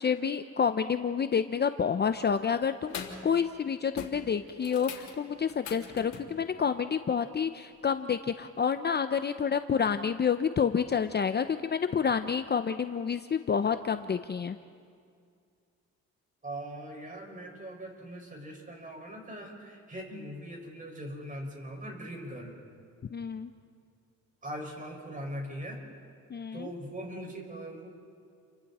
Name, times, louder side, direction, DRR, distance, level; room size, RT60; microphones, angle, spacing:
voice 1, 0.0-14.6 23.1-23.5 26.3-26.7, left 6 dB, 35° left, 10 dB, 0.7 m, -29 dB
sound 1, 2.1-2.4 2.8-3.3 3.5-3.7 4.0-6.3 8.4-8.5, left 7 dB, 70° left, 3.4 m, -42 dB
voice 2, 16.4-22.6 24.4-25.8 26.5-27.9, right 1 dB, 25° right, 1 dB, 5.9 m, -41 dB
30.0 x 24.5 x 4.3 m, 2.3 s
cardioid pair, 90°, 30 cm